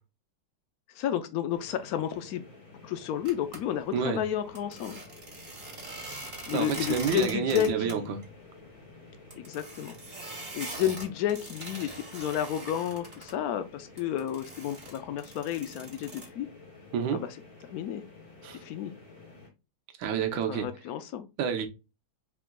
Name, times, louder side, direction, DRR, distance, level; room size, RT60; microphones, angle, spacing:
voice 1, 0.9-2.4 2.8-5.0 6.5-8.1 9.4-10.0 10.5-16.5 17.1-17.3 17.7-18.0 18.5-18.9 20.5-21.3, left 10 dB, 85° left, 0.8 m, -31 dB
sound 1, 1.5-19.5, left 3 dB, 40° left, 1.9 m, -51 dB
sound 2, 3.2-3.6 4.5-7.9 8.2-8.3 8.6-8.7 9.3-13.3 14.0-16.3, right 2 dB, 30° right, 1.5 m, -42 dB
voice 2, 6.5-8.2 16.9-17.2 18.4-18.6 20.0-20.7 21.4-21.7, right 7 dB, 75° right, 1.5 m, -29 dB
4.6 x 3.8 x 2.2 m
omnidirectional pair, 2.1 m